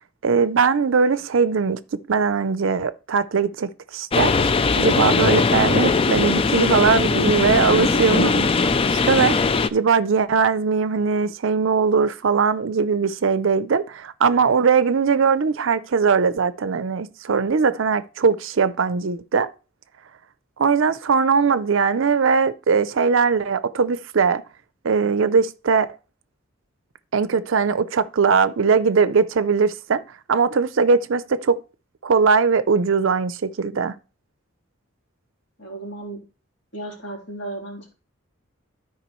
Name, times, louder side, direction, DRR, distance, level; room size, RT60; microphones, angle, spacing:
voice 1, 0.2-1.8 2.1-8.5 8.8-19.5 20.6-24.4 24.8-25.9 27.1-30.0 30.3-31.6 32.0-33.9, right 5 dB, 65° right, 0.5 m, -20 dB
sound 1, 4.1-9.7, left 4 dB, 25° left, 0.3 m, -20 dB
voice 2, 7.7-8.3 35.6-36.2 36.7-37.9, right 1 dB, 55° left, 3.3 m, -34 dB
13.0 x 4.9 x 3.1 m
head